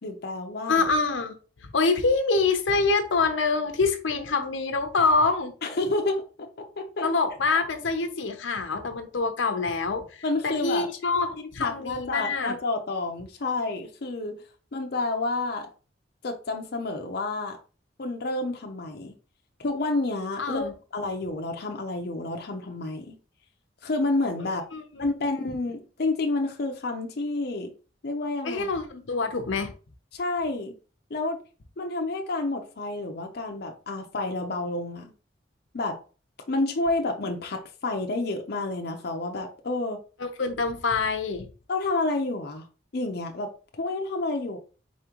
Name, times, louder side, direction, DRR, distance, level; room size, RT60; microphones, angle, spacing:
voice 1, 0.0-0.8 5.6-7.1 10.2-10.9 11.6-14.4 14.7-15.7 16.2-17.6 18.0-19.1 19.6-20.6 20.9-23.2 23.8-24.6 25.0-27.7 28.0-28.7 30.1-30.7 31.1-31.4 31.8-35.1 35.7-36.0 36.5-40.0 41.7-42.7 42.9-44.6, left 2 dB, 55° left, 0.6 m, -29 dB
voice 2, 0.7-5.5 7.0-12.6 20.4-20.7 24.4-25.1 28.4-29.7 40.2-41.5, left 4 dB, 90° left, 0.7 m, -26 dB
4.2 x 3.6 x 3.0 m
head